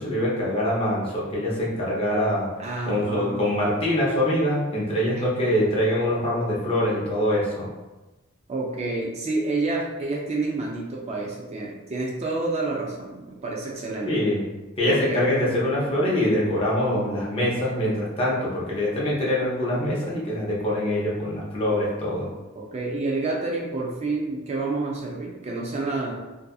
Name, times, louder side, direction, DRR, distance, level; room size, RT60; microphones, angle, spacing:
voice 1, 0.0-2.5 2.9-7.7 14.1-14.4 14.8-22.3, left 1 dB, 30° left, -6 dB, 0.7 m, -24 dB
voice 2, 2.6-3.4 5.1-5.2 8.5-14.3 14.9-15.3 22.6-26.2, right 3 dB, 30° right, -2 dB, 0.4 m, -29 dB
2.6 x 2.4 x 2.3 m, 1.1 s
head